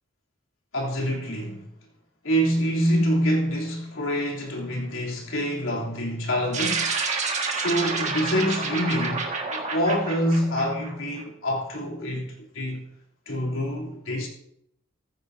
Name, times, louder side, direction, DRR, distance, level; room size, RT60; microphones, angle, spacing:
voice 1, 0.7-1.7 2.2-6.9 7.5-12.8 13.2-14.3, equal, 75° left, 3.3 m, -26 dB
sound 1, 6.5-11.2, right 4 dB, 35° right, 1.8 m, -29 dB
15.0 x 14.5 x 2.8 m
head